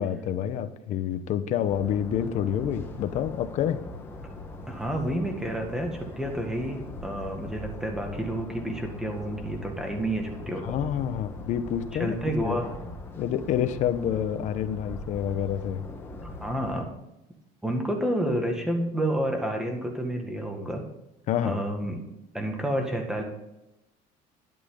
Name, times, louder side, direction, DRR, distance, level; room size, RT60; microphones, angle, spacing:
voice 1, 0.0-3.8 10.6-12.2 12.4-12.6 13.2-15.9 21.3-21.6, left 9 dB, 50° left, 10 dB, 1.0 m, -28 dB
sound 1, 1.7-16.8, left 2 dB, 15° left, 1.4 m, -41 dB
voice 2, 4.7-10.8 11.9-12.7 16.4-16.9 17.6-20.9 21.4-22.0 22.3-23.2, right 1 dB, 5° right, 3 dB, 1.8 m, -29 dB
12.5 x 10.5 x 3.9 m, 0.92 s
cardioid pair, 170°, 16 cm